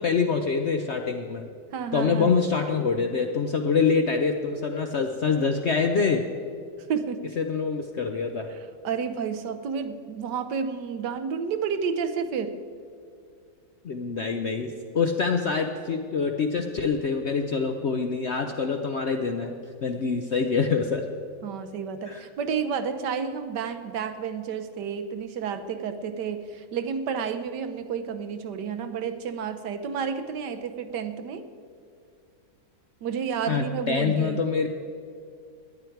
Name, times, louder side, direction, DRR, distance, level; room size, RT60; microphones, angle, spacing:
voice 1, 0.0-1.5 1.9-6.2 7.4-8.5 13.8-21.0 22.1-22.2 33.5-34.7, left 5 dB, 60° left, 5 dB, 0.7 m, -25 dB
voice 2, 1.7-2.3 6.9-7.3 8.5-8.6 8.8-12.6 21.4-31.5 33.0-34.4, right 6 dB, 75° right, 9 dB, 1.4 m, -31 dB
18.0 x 10.5 x 4.5 m, 2.3 s
omnidirectional pair, 1.9 m